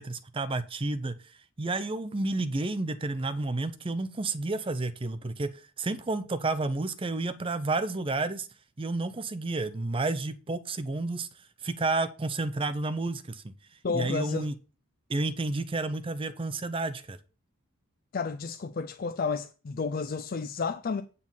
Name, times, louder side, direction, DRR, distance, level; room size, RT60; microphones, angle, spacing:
voice 1, 0.0-8.5 8.8-11.3 11.6-14.5 15.1-17.2, right 2 dB, 25° right, 0.5 m, -31 dB
voice 2, 13.8-14.5 18.1-21.0, left 4 dB, 40° left, 0.4 m, -31 dB
8.9 x 4.2 x 7.1 m
head